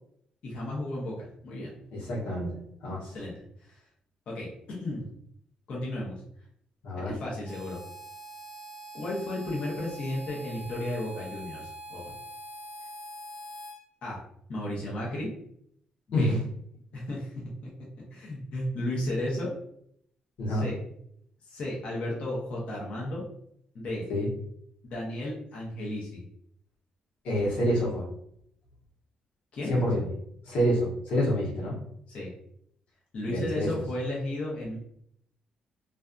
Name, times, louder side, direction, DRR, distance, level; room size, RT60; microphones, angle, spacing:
voice 1, 0.4-1.7 3.1-3.3 3.6-3.8 4.3-5.0 5.7-6.2 6.9-7.8 8.9-12.1 14.0-14.2 14.5-15.3 16.2-16.3 16.9-17.3 17.6-17.7 18.1-19.5 20.5-20.8 21.4-23.2 23.7-24.0 24.8-26.3 29.5-29.8 32.1-32.3 33.1-34.8, left 1 dB, 50° left, -4 dB, 0.7 m, -34 dB
voice 2, 1.9-3.1 6.8-7.1 16.1-16.4 20.4-20.7 24.1-24.3 27.2-28.1 29.7-30.0 30.5-31.8 33.3-33.7, equal, 90° left, -3 dB, 0.9 m, -27 dB
Harmonica, 7.4-13.8, right 1 dB, 10° right, 0.8 m, -44 dB
2.5 x 2.2 x 2.4 m, 0.70 s
cardioid pair, 155°, 3 cm